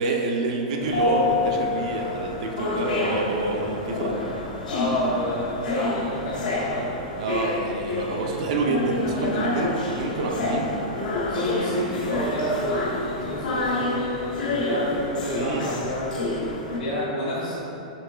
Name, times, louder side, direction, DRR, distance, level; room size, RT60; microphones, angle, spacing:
voice 1, 0.0-4.2 7.2-10.7 15.3-15.7, right 2 dB, 55° right, 2 dB, 0.5 m, -27 dB
sound 1, 0.8-16.8, left 2 dB, 90° left, 0.8 m, -28 dB
voice 2, 4.6-6.9 11.3-16.3 16.7-17.6, left 1 dB, 75° left, -9 dB, 1.1 m, -29 dB
6.9 x 2.9 x 2.2 m, 3.0 s
hypercardioid pair, 150°, 4 cm